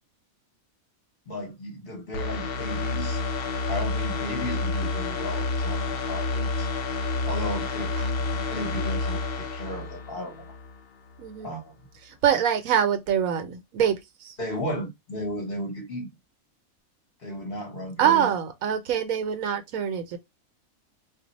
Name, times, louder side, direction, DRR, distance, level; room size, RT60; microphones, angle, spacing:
voice 1, 1.3-3.2 3.7-6.7 7.2-10.5 11.4-11.7 14.4-16.1 17.2-18.3, equal, 45° left, 1.0 m, -34 dB
sound 1, 2.1-10.8 11.2-11.3, left 3 dB, 60° left, 0.6 m, -29 dB
voice 2, 11.2-11.5 12.0-14.3 18.0-20.2, right 9 dB, 75° right, 1.0 m, -25 dB
2.5 x 2.1 x 3.9 m
omnidirectional pair, 1.5 m